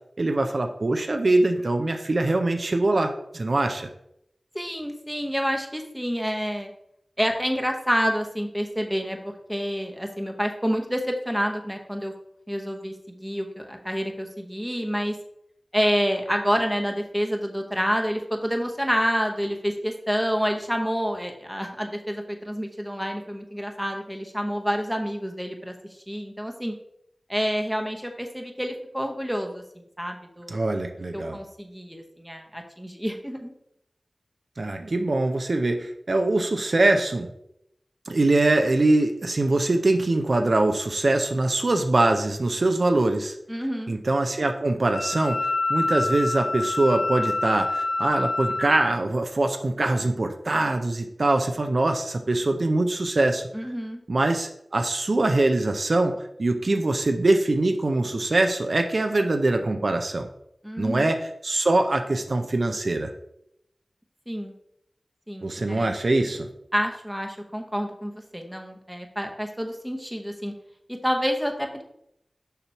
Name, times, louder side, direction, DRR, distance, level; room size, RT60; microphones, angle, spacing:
voice 1, 0.2-3.9 30.5-31.4 34.6-37.3 38.1-43.3 43.9-45.4 45.7-53.4 54.1-56.1 56.4-60.3 60.8-61.2 61.4-63.1 65.4-66.5, right 2 dB, 60° right, 5 dB, 0.5 m, -23 dB
voice 2, 4.5-6.7 7.2-12.1 12.5-15.2 15.7-26.7 27.3-30.6 31.1-33.5 43.5-43.9 53.5-54.0 60.6-61.1 64.3-64.5 65.3-66.0 66.7-70.5 70.9-71.8, equal, ahead, 3 dB, 0.9 m, -28 dB
Wind instrument woodwind instrument, 44.9-48.9, left 2 dB, 80° left, 0.8 m, -27 dB
6.8 x 2.9 x 5.7 m, 0.78 s
wide cardioid pair, 65°, 0 cm